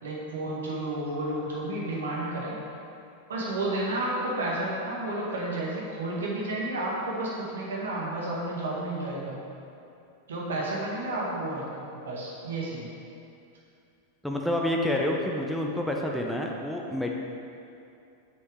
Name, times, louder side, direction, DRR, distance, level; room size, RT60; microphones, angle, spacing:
voice 1, 0.0-2.6 3.3-9.4 10.3-12.9, right 1 dB, 65° right, -4 dB, 1.8 m, -31 dB
voice 2, 14.2-17.1, left 1 dB, ahead, 0 dB, 0.7 m, -28 dB
8.5 x 6.3 x 3.6 m, 2.6 s
figure-of-eight pair, 90°, 0 cm